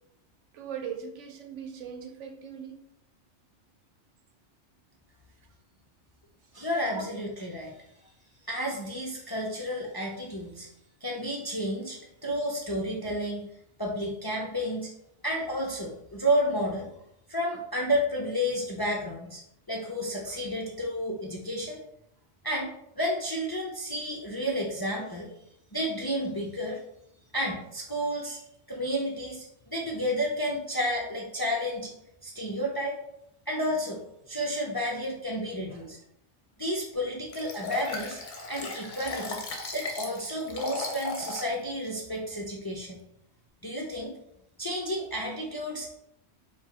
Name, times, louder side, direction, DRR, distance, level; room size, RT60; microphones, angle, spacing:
voice 1, 0.5-2.8 6.9-7.0, right 7 dB, 85° right, 6 dB, 1.0 m, -39 dB
voice 2, 6.5-7.8 8.4-10.7 11.0-13.4 13.8-14.9 15.2-16.9 17.3-19.4 19.7-21.8 22.4-25.3 25.7-26.8 27.3-28.4 28.7-31.9 32.2-33.0 33.5-34.0 34.3-36.0 36.6-38.2 38.5-39.4 39.7-43.0 43.6-44.1 44.6-45.9, equal, 35° left, -2 dB, 0.4 m, -31 dB
Liquid, 37.3-41.5 42.0-42.1, left 3 dB, 50° left, 0.8 m, -36 dB
4.7 x 2.3 x 4.1 m, 0.78 s
omnidirectional pair, 1.2 m